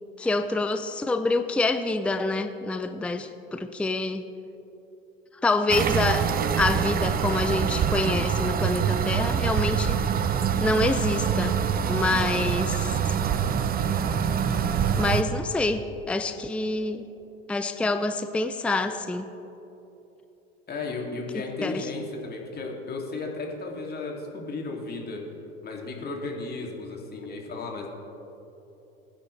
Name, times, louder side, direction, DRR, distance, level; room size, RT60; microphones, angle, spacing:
voice 1, 0.2-4.2 5.4-10.0 10.6-11.6 11.9-13.1 15.0-17.1 17.5-19.3 21.3-21.9, left 2 dB, 5° left, 9 dB, 0.5 m, -26 dB
sound 1, 5.7-15.2, right 8 dB, 30° right, 0.8 m, -25 dB
voice 2, 20.7-25.2 25.6-27.9, left 3 dB, 30° left, 0 dB, 2.7 m, -34 dB
22.0 x 9.9 x 3.3 m, 3.0 s
hypercardioid pair, 80°, 31 cm